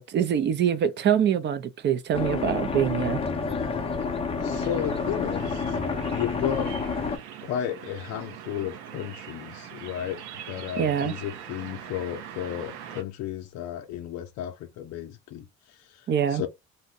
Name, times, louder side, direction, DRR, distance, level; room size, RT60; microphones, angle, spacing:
voice 1, 0.0-3.2 10.8-11.1 16.1-16.4, right 8 dB, 40° right, 0.4 m, -24 dB
sound 1, 2.1-7.2, left 4 dB, 20° left, 0.5 m, -29 dB
voice 2, 4.4-5.8 6.1-6.7 7.4-16.5, left 10 dB, 65° left, 0.5 m, -33 dB
sound 2, 4.5-13.0, right 9 dB, 90° right, 0.7 m, -42 dB
2.6 x 2.1 x 3.7 m
cardioid pair, 130°, 29 cm